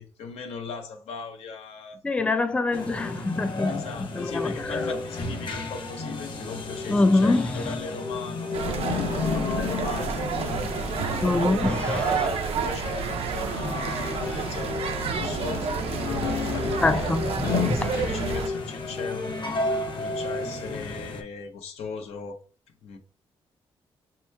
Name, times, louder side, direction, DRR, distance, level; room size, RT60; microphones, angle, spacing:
voice 1, 0.0-2.0 2.5-2.9 3.7-19.4 20.0-22.4 22.8-23.0, left 5 dB, 90° left, 0.8 m, -38 dB
voice 2, 2.0-3.8 4.1-4.5 6.9-7.6 11.2-12.3 16.8-17.9, left 2 dB, 10° left, 0.4 m, -24 dB
sound 1, 2.7-21.2, left 3 dB, 50° left, 0.9 m, -32 dB
sound 2, 8.5-18.5, right 6 dB, 70° right, 0.5 m, -30 dB
5.3 x 3.0 x 2.2 m
cardioid pair, 80°, 10 cm